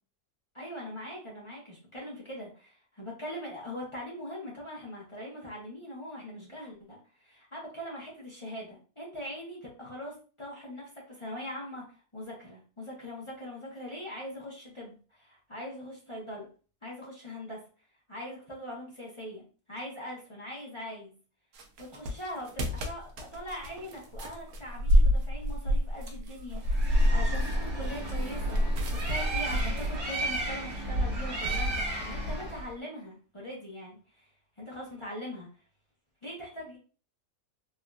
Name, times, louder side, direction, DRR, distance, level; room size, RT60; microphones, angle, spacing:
voice 1, 0.5-11.9 12.1-16.5 16.8-17.6 18.1-21.1 21.8-34.3 34.6-35.5 36.2-36.8, left 1 dB, 30° left, -4 dB, 0.5 m, -41 dB
sound 1, 21.5-30.0, equal, 70° right, 1.0 m, -27 dB
Bird, 26.7-32.7, right 1 dB, 50° right, 1.6 m, -32 dB
3.4 x 2.5 x 2.2 m, 0.38 s
omnidirectional pair, 1.7 m